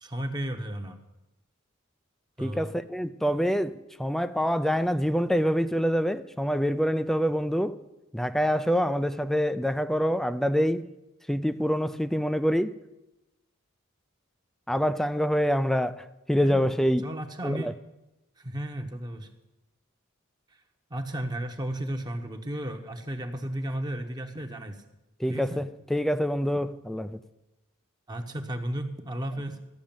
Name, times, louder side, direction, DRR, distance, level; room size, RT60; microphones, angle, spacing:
voice 1, 0.0-1.0 2.4-2.7 16.4-16.6 17.0-17.7 18.4-19.3 20.9-24.8 25.3-25.6 28.1-29.6, right 1 dB, 20° right, 0.9 m, -34 dB
voice 2, 2.4-7.8 8.1-10.9 11.3-12.8 14.7-17.0 17.4-17.7 25.2-27.2, equal, ahead, 0.3 m, -26 dB
13.5 x 6.3 x 8.8 m
head